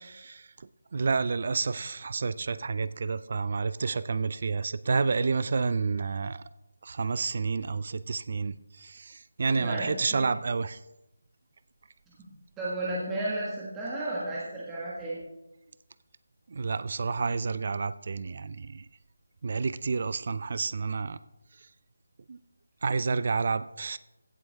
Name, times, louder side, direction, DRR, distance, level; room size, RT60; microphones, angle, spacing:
voice 1, 0.1-0.5 0.9-6.4 6.8-10.8 16.5-18.9 19.4-21.2 22.3-22.4 22.8-24.0, right 4 dB, 45° right, 16 dB, 0.4 m, -29 dB
voice 2, 9.6-10.3 12.1-12.2 12.6-15.2, right 1 dB, 10° right, -8 dB, 1.5 m, -33 dB
16.0 x 7.6 x 3.5 m, 0.94 s
figure-of-eight pair, 170°, 0 cm